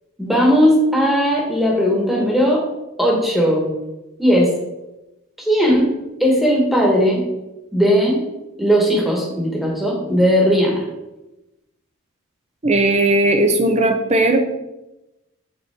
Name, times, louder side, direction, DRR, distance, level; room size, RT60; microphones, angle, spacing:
voice 1, 0.2-2.6 3.0-3.7 4.2-4.5 5.4-5.9 6.2-7.2 7.7-8.2 8.6-10.8, equal, ahead, -3 dB, 1.3 m, -17 dB
voice 2, 12.6-14.4, right 2 dB, 30° right, 5 dB, 0.6 m, -16 dB
6.7 x 4.3 x 3.6 m, 0.98 s
head